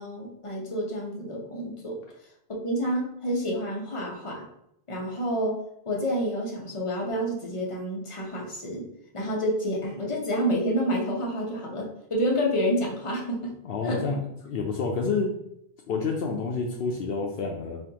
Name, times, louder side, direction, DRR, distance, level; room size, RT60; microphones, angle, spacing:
voice 1, 0.0-2.0 2.5-4.4 4.9-5.6 5.9-8.9 9.1-13.5 13.8-14.0, equal, 30° left, -2 dB, 0.9 m, -28 dB
voice 2, 13.6-15.3 15.9-17.8, left 4 dB, 70° left, 1 dB, 0.8 m, -29 dB
5.4 x 2.5 x 2.8 m, 0.77 s
omnidirectional pair, 1.1 m